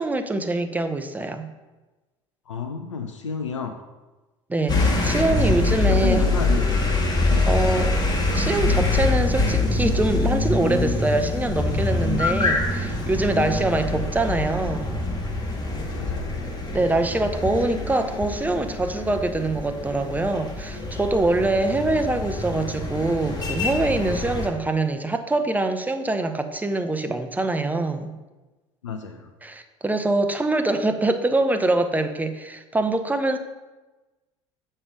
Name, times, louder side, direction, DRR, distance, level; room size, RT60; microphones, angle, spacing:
voice 1, 0.0-1.5 4.5-6.3 7.5-8.0 8.3-15.0 16.7-28.1 29.4-33.4, right 2 dB, 10° right, 8 dB, 0.7 m, -24 dB
voice 2, 2.5-3.8 5.8-6.6 7.3-7.6 16.0-16.3 28.8-29.2, left 5 dB, 80° left, 6 dB, 0.5 m, -31 dB
sound 1, 4.7-24.5, left 2 dB, 25° left, 1.8 m, -24 dB
7.0 x 5.5 x 4.9 m, 1.2 s
figure-of-eight pair, 65°, 15 cm